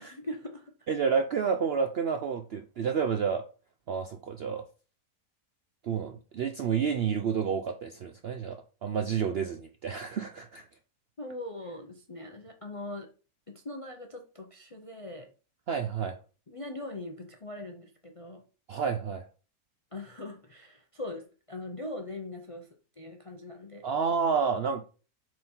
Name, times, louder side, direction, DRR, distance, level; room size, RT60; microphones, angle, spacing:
voice 1, 0.0-0.7 11.2-13.1 13.5-15.3 16.5-18.4 19.9-22.7 23.0-23.9, left 1 dB, 40° left, 4 dB, 0.5 m, -41 dB
voice 2, 0.9-3.4 3.9-4.6 5.8-10.7 15.7-16.2 18.7-19.3 23.8-24.8, right 6 dB, 65° right, 7 dB, 0.6 m, -30 dB
7.5 x 3.9 x 4.4 m, 0.37 s
omnidirectional pair, 1.6 m